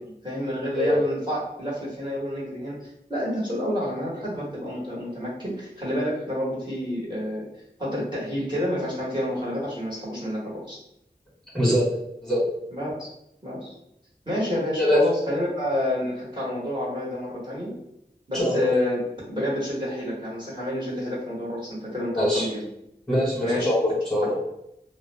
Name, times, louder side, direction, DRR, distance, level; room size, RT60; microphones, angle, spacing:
voice 1, 0.2-7.4 7.8-10.8 12.7-13.1 13.4-13.7 14.3-17.7 18.3-19.0 19.3-22.7 23.4-23.7, left 1 dB, 25° right, -8 dB, 1.1 m, -29 dB
voice 2, 11.5-11.9 12.2-12.4 14.8-15.0 18.3-18.7 22.1-22.5 23.1-24.5, equal, 5° left, -7 dB, 1.2 m, -23 dB
2.4 x 2.0 x 3.2 m, 0.80 s
wide cardioid pair, 45°, 17 cm